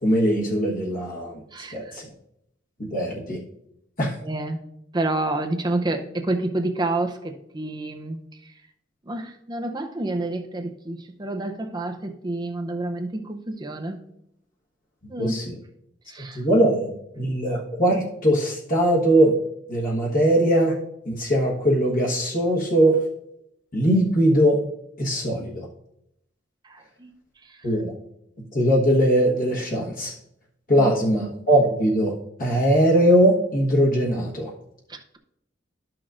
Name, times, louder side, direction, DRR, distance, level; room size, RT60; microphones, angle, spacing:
voice 1, 0.0-1.4 1.7-2.1 2.8-3.4 4.0-4.2 15.2-15.5 16.2-19.4 19.7-20.8 21.0-23.0 23.7-24.6 25.0-25.7 27.6-27.9 28.5-30.1 30.7-34.5, right 1 dB, 50° left, -3 dB, 1.4 m, -21 dB
voice 2, 1.5-2.0 4.2-4.6 4.9-8.5 9.1-14.0 15.1-15.4 16.1-16.4 26.6-27.1 27.4-27.6 30.8-30.9 34.9-35.2, right 2 dB, 25° right, 5 dB, 0.7 m, -29 dB
12.5 x 6.1 x 2.5 m, 0.79 s
head